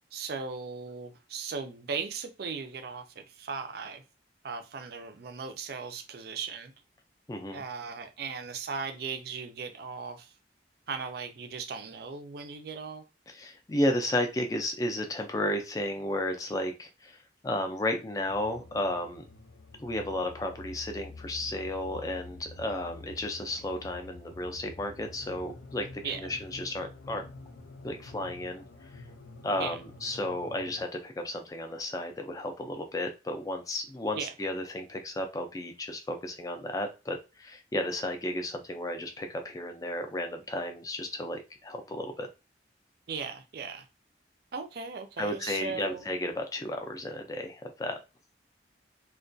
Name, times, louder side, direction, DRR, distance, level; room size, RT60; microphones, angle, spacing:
voice 1, 0.1-4.0 4.4-6.7 7.5-10.3 10.9-13.0 26.0-26.2 29.6-29.8 34.2-34.3 43.1-43.9 44.5-46.0, right 5 dB, 55° right, 0.4 m, -37 dB
voice 2, 7.3-7.6 13.3-19.2 19.8-25.9 26.1-27.2 27.8-28.6 28.9-29.0 29.4-42.3 45.2-48.0, left 1 dB, 20° left, 0.3 m, -33 dB
sound 1, 18.3-30.8, left 3 dB, 85° left, 0.4 m, -48 dB
2.3 x 2.1 x 2.5 m
head